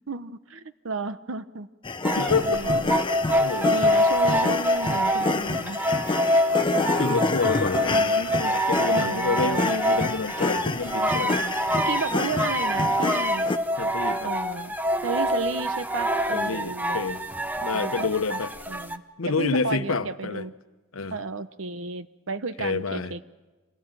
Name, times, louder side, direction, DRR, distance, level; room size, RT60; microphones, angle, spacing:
voice 1, 0.1-1.7 2.4-2.9 3.7-5.8 6.3-6.4 7.8-8.1 8.9-9.7 11.2-13.5 14.2-14.7 15.0-17.0 17.7-18.4 18.7-20.5 21.1-23.2, right 4 dB, 65° right, 0.9 m, -33 dB
sound 1, 1.8-13.6, left 3 dB, 25° left, 0.7 m, -28 dB
sound 2, 2.0-19.0, equal, 10° right, 0.8 m, -25 dB
voice 2, 2.2-2.7 3.4-3.7 6.8-11.4 13.8-14.3 16.3-17.2 17.6-18.5 19.2-20.4 20.9-21.2 22.6-23.1, left 4 dB, 85° left, 1.0 m, -28 dB
26.0 x 17.0 x 9.1 m
head